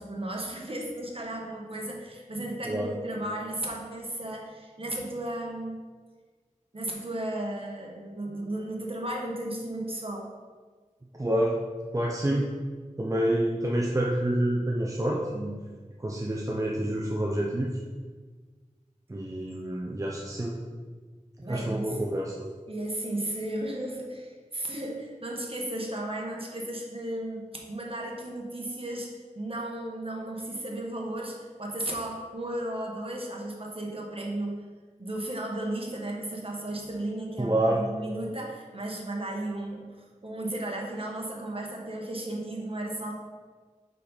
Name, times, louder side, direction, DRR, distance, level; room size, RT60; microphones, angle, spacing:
voice 1, 0.0-5.8 6.7-10.3 21.4-22.0 22.7-34.6 35.0-43.1, right 1 dB, 45° right, -1 dB, 1.2 m, -34 dB
voice 2, 11.2-11.6 11.9-12.5 13.0-15.5 16.0-17.8 19.1-20.6 21.4-22.5 37.4-37.8, right 1 dB, 25° right, -2 dB, 0.6 m, -28 dB
5.4 x 5.1 x 4.1 m, 1.4 s
wide cardioid pair, 50°, 13 cm